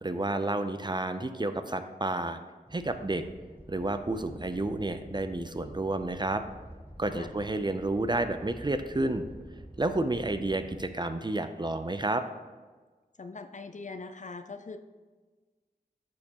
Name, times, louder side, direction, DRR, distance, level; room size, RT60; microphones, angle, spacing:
voice 1, 0.0-2.4 2.7-3.2 3.7-6.4 7.0-9.3 9.8-12.2, right 2 dB, 25° right, 9 dB, 0.4 m, -30 dB
Animal, 2.7-10.8, right 1 dB, 10° right, 0.9 m, -48 dB
voice 2, 13.2-14.8, left 3 dB, 50° left, 8 dB, 0.5 m, -41 dB
10.5 x 4.3 x 2.9 m, 1.4 s
wide cardioid pair, 45°, 17 cm